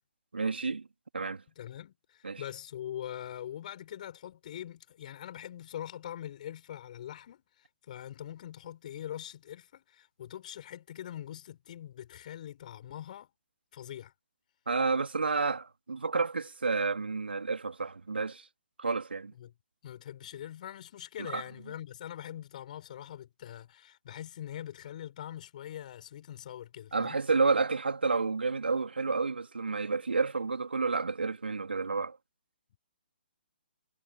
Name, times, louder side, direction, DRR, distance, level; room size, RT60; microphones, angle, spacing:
voice 1, 0.3-0.9 1.1-1.4 2.2-2.4 14.7-18.4 18.8-19.3 21.2-21.4 26.9-32.2, right 4 dB, 80° right, 3.2 m, -30 dB
voice 2, 1.6-13.3 13.7-14.1 19.4-19.5 19.8-27.2, left 11 dB, 45° left, 6.9 m, -43 dB
figure-of-eight pair, 135°, 6 cm